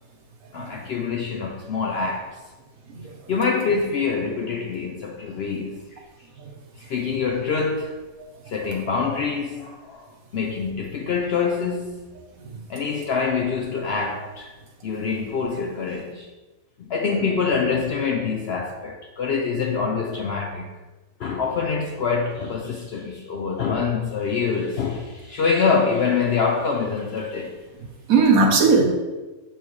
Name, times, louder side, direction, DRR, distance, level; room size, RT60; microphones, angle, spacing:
voice 1, 0.5-2.4 3.3-6.0 6.8-8.0 8.5-10.1 10.3-12.2 12.7-14.5 14.8-16.3 16.9-20.7 21.2-27.5, left 5 dB, 65° left, 0.6 m, -25 dB
voice 2, 27.8-28.8, right 4 dB, 70° right, 1.3 m, -19 dB
7.0 x 4.4 x 3.1 m
omnidirectional pair, 1.5 m